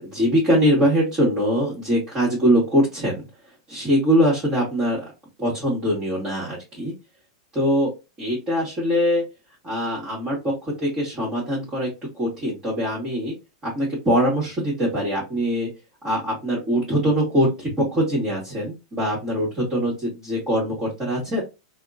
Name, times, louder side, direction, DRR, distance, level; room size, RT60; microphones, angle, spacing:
voice 1, 0.0-3.2 3.7-5.1 5.4-6.9 7.5-7.9 8.2-9.2 9.6-11.9 12.1-13.3 13.6-15.7 16.0-21.4, equal, 25° right, -6 dB, 1.6 m, -22 dB
3.4 x 2.2 x 2.5 m, 0.26 s
hypercardioid pair, 130°, 3 cm